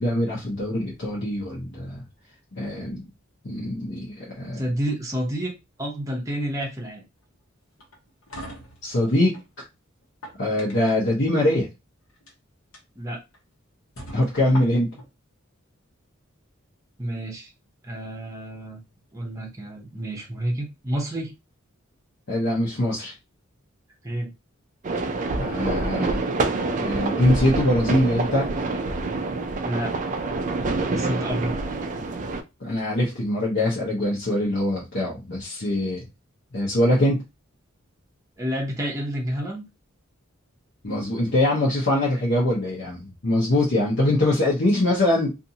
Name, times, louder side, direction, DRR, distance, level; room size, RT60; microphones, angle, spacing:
voice 1, 0.0-2.0 2.6-3.1 3.4-4.6 8.8-9.4 10.4-11.7 14.1-14.9 22.3-23.1 25.4-26.4 26.8-28.5 32.6-36.1 36.5-37.2 40.8-45.3, left 1 dB, 60° left, -5 dB, 0.9 m, -23 dB
voice 2, 4.6-7.0 13.0-13.2 17.0-17.5 17.8-18.8 19.1-21.3 24.0-24.3 29.6-29.9 30.9-31.6 38.4-39.6, right 1 dB, 15° right, -1 dB, 0.7 m, -29 dB
sound 1, 7.8-9.5 10.0-11.1 12.1-12.3 12.7-12.8 13.3-13.4 14.0-15.1, equal, 90° left, 1.0 m, -41 dB
sound 2, 24.8-32.4, right 3 dB, 40° right, 0.3 m, -26 dB
2.6 x 2.5 x 2.7 m, 0.24 s
head